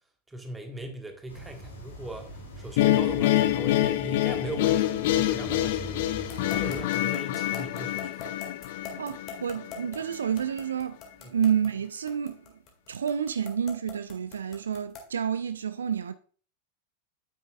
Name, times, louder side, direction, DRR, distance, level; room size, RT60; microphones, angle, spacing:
voice 1, 0.3-8.4 11.2-11.4, right 1 dB, 10° right, 1.4 m, -39 dB
sound 1, 1.3-6.8, equal, 70° left, 2.3 m, -43 dB
sound 2, 2.8-9.9, left 14 dB, 50° left, 0.5 m, -26 dB
sound 3, 6.3-15.2, left 5 dB, 30° left, 2.0 m, -42 dB
voice 2, 9.0-11.0 11.3-12.4 12.9-16.1, right 8 dB, 70° right, 0.4 m, -29 dB
9.2 x 8.3 x 2.3 m
figure-of-eight pair, 90°, 0 cm